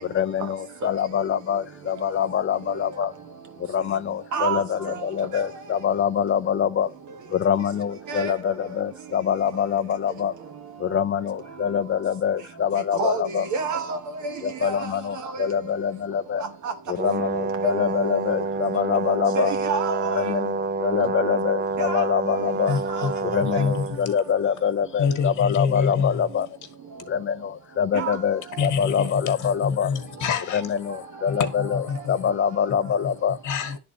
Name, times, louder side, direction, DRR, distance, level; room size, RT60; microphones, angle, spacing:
voice 1, 0.0-3.1 3.6-6.9 7.3-10.3 10.8-13.5 14.4-16.5 16.9-19.6 20.1-22.8 23.2-26.5 27.1-29.9 30.4-33.4, left 8 dB, 45° left, 0.5 m, -25 dB
voice 2, 13.5-14.0 17.6-17.7 19.4-20.1 27.9-28.1, right 4 dB, 75° right, 1.5 m, -26 dB
Brass instrument, 17.0-24.0, right 3 dB, 35° right, 0.6 m, -27 dB
voice 3, 22.7-24.1 25.0-26.3 28.6-32.3 32.8-33.8, left 6 dB, 80° left, 1.5 m, -27 dB
11.0 x 4.1 x 2.8 m
cardioid pair, 90°, 30 cm